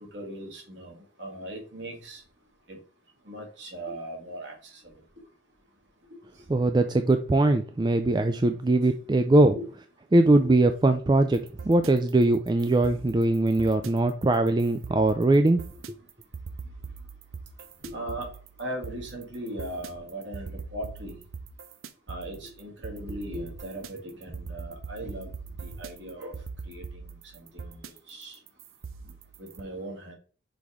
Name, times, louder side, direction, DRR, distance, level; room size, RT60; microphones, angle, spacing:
voice 1, 0.1-2.2 2.7-2.8 3.3-4.8 9.5-9.7 10.2-10.5 17.8-18.3 18.6-21.2 22.1-25.3 25.6-27.1 27.5-28.4 29.4-30.1, right 1 dB, 60° right, 1 dB, 2.0 m, -38 dB
voice 2, 6.5-9.6 10.1-15.6 15.9-16.0, right 2 dB, 20° right, 8 dB, 0.3 m, -21 dB
sound 1, 11.3-29.6, right 5 dB, 85° right, 0.7 m, -42 dB
6.0 x 4.8 x 3.6 m, 0.40 s
head